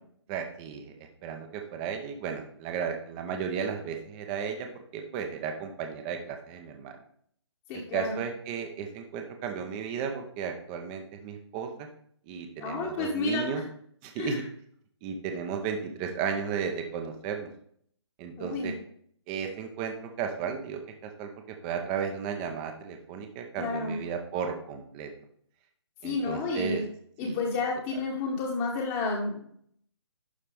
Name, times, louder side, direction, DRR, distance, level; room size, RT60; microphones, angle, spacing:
voice 1, 0.3-0.9 1.2-4.7 4.9-7.0 7.9-11.9 12.3-13.6 14.0-14.4 15.0-17.5 18.2-18.7 19.3-20.8 21.2-21.3 21.6-25.1 26.0-26.8 27.2-27.4, right 7 dB, 20° right, 5 dB, 0.7 m, -34 dB
voice 2, 7.7-8.2 12.6-13.5 14.2-14.4 18.4-18.7 23.6-24.0 26.0-26.8 27.2-29.6, left 3 dB, 20° left, -2 dB, 1.1 m, -30 dB
11.5 x 4.3 x 3.4 m, 0.63 s
figure-of-eight pair, 145°, 15 cm